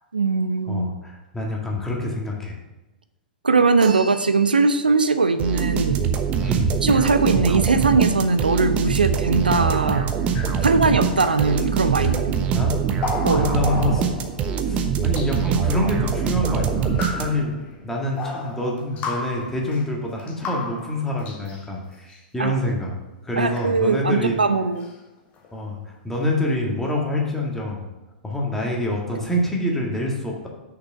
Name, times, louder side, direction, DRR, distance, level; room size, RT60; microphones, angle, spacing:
voice 1, 0.1-0.9 3.4-6.0 6.8-10.1 10.6-12.3 13.2-13.5 22.4-22.6 23.4-24.8, right 4 dB, 80° right, 10 dB, 0.5 m, -20 dB
voice 2, 0.7-2.6 6.4-6.7 10.5-10.7 12.0-12.2 12.5-12.8 13.1-14.1 14.6-17.6 17.8-23.0 23.2-24.4 25.5-27.9 28.2-30.5, left 1 dB, 5° left, -2 dB, 1.8 m, -26 dB
sound 1, 3.8-5.0, right 4 dB, 60° right, 1.3 m, -36 dB
sound 2, 5.4-17.6, right 7 dB, 25° right, 0.8 m, -23 dB
sound 3, 10.3-10.8 11.1-11.6 12.0-12.1 13.0-14.5 15.2-15.9 16.8-17.7 18.2-21.7 22.1-22.2 23.4-24.1 24.8-24.9 25.2-25.5, left 3 dB, 30° left, 1.4 m, -33 dB
6.5 x 6.0 x 5.7 m, 1.1 s
figure-of-eight pair, 105°, 5 cm